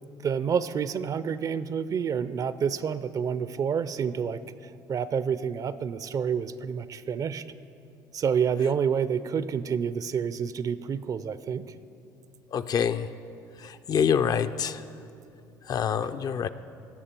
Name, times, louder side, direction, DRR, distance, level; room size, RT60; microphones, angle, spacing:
voice 1, 0.2-7.4 8.1-11.7, right 7 dB, 45° right, 15 dB, 0.5 m, -28 dB
voice 2, 12.5-13.1 13.6-14.8 15.7-16.5, left 7 dB, 45° left, 11 dB, 0.5 m, -26 dB
17.5 x 6.8 x 4.5 m, 2.6 s
hypercardioid pair, 70°, 9 cm